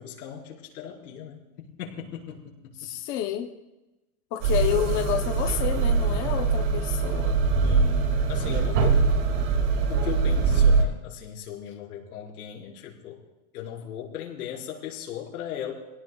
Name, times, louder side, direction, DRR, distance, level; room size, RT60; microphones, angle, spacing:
voice 1, 0.0-2.9 7.6-9.0 9.9-13.2 13.5-15.7, left 9 dB, 80° left, -2 dB, 5.0 m, -37 dB
voice 2, 2.8-3.5 4.3-7.4, left 11 dB, 25° left, 4 dB, 0.7 m, -29 dB
sound 1, 4.4-10.9, right 4 dB, 50° right, 2.3 m, -23 dB
26.5 x 17.5 x 2.3 m, 1.0 s
supercardioid pair, 170°, 45 cm